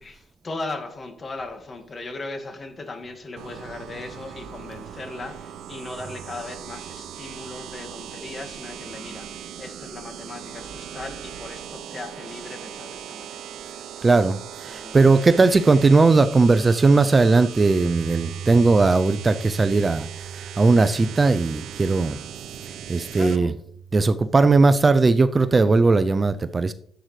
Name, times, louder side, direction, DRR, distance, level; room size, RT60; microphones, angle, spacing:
voice 1, 0.0-13.4 14.0-14.1 14.6-15.0 23.1-23.5, left 2 dB, 35° left, 1.8 m, -37 dB
sound 1, 3.4-23.4, right 9 dB, 80° right, 0.7 m, -39 dB
voice 2, 14.0-22.2 22.9-23.5 23.9-26.7, right 3 dB, 30° right, 0.4 m, -18 dB
Bass guitar, 17.8-24.1, right 6 dB, 10° right, 3.8 m, -39 dB
11.5 x 7.9 x 3.2 m
cardioid pair, 90°, 0 cm